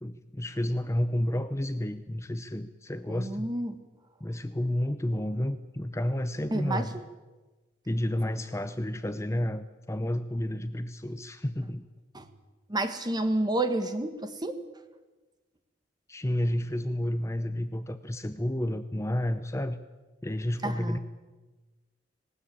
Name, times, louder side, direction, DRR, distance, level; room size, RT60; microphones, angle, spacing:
voice 1, 0.0-3.5 4.2-7.0 7.9-11.8 16.1-19.8 20.2-21.0, left 1 dB, 15° left, 10 dB, 0.7 m, -31 dB
voice 2, 3.1-3.7 6.5-7.0 12.1-12.2 12.7-14.6 20.6-21.0, right 2 dB, 25° right, 8 dB, 1.7 m, -30 dB
19.5 x 19.0 x 8.6 m, 1.2 s
head